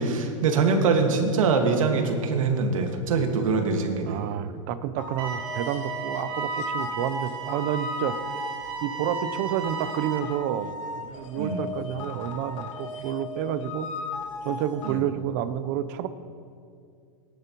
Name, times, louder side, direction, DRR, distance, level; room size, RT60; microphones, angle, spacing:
voice 1, 0.0-4.2 11.4-11.6 14.8-15.0, right 4 dB, 90° right, 4 dB, 1.7 m, -23 dB
voice 2, 4.0-8.2 8.8-13.9 14.4-16.1, right 10 dB, 35° right, 13 dB, 0.5 m, -30 dB
sound 1, 5.0-14.9, left 4 dB, 70° left, 1.4 m, -36 dB
sound 2, 5.2-10.2, right 8 dB, 55° right, 1.4 m, -34 dB
19.0 x 10.5 x 3.0 m, 2.4 s
supercardioid pair, 165°, 17 cm